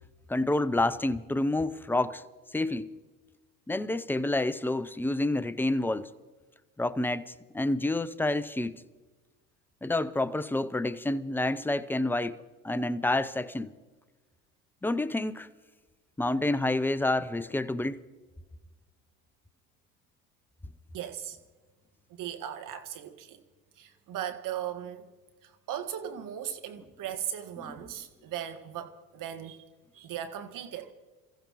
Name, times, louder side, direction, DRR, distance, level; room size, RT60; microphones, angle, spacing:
voice 1, 0.3-2.2 2.5-3.0 3.7-6.1 6.8-8.8 9.8-13.7 14.8-15.5 16.2-18.0 27.6-27.8, left 2 dB, 5° left, 0.5 m, -29 dB
voice 2, 20.9-21.4 22.1-23.4 23.8-25.1 25.4-29.6 29.9-30.9, right 10 dB, 50° right, 1.7 m, -38 dB
28.5 x 15.0 x 3.1 m
hypercardioid pair, 80°, 42 cm